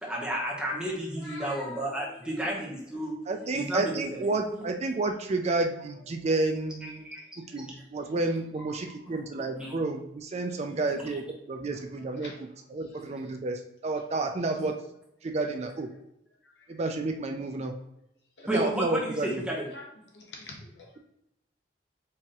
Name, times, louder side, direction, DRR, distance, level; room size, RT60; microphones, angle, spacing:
voice 1, 0.0-3.2 3.5-4.7 6.8-7.2 7.6-7.7 9.6-9.7 10.9-11.0 13.0-13.1 18.5-19.7, right 1 dB, 5° right, -4 dB, 1.0 m, -32 dB
voice 2, 1.2-2.4 8.0-8.1 8.6-8.9 12.2-12.4 16.6-16.7 18.4-18.5 19.7-19.9 20.1-20.9, left 2 dB, 70° left, -1 dB, 1.1 m, -44 dB
voice 3, 3.3-7.0 7.4-14.8 15.2-15.9 16.7-17.7 18.5-19.4, right 2 dB, 35° right, 5 dB, 0.4 m, -30 dB
4.5 x 3.5 x 3.0 m, 0.79 s
head